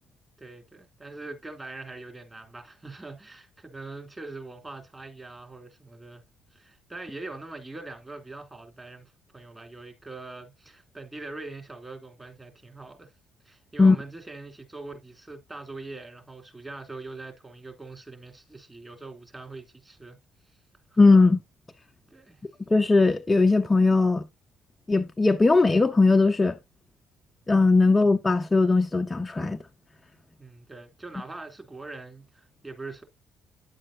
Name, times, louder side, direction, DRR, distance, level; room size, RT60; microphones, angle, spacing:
voice 1, 0.4-6.2 6.5-13.1 13.4-20.2 20.9-21.0 22.1-22.4 30.4-33.0, right 3 dB, 20° right, 3.1 m, -42 dB
voice 2, 21.0-21.4 22.7-24.2 24.9-26.6 27.5-29.6, left 3 dB, 20° left, 0.7 m, -19 dB
9.8 x 7.6 x 2.7 m
figure-of-eight pair, 50°, 0 cm